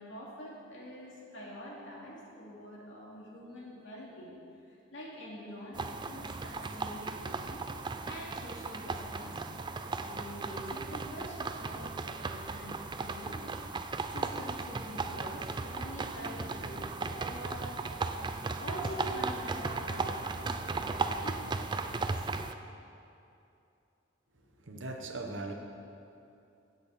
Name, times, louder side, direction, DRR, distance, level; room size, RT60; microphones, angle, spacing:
voice 1, 0.0-4.3 4.9-9.6 10.0-13.5 13.8-17.7 18.6-22.3, equal, 70° left, -4 dB, 2.6 m, -45 dB
sound 1, 5.7-22.5, right 3 dB, 25° right, 0.4 m, -36 dB
voice 2, 24.3-25.5, right 2 dB, 75° right, 3 dB, 1.1 m, -40 dB
16.0 x 7.9 x 4.2 m, 2.7 s
head